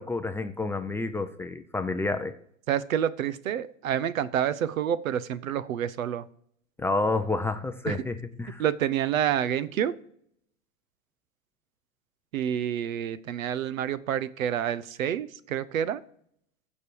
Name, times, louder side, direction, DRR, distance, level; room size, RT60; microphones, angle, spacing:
voice 1, 0.0-2.3 6.8-8.6, left 3 dB, 5° left, 7 dB, 0.4 m, -29 dB
voice 2, 2.7-6.2 7.9-8.0 8.6-9.9 12.3-16.0, right 10 dB, 85° right, 16 dB, 0.9 m, -28 dB
15.5 x 5.4 x 4.7 m, 0.67 s
hypercardioid pair, 120°, 39 cm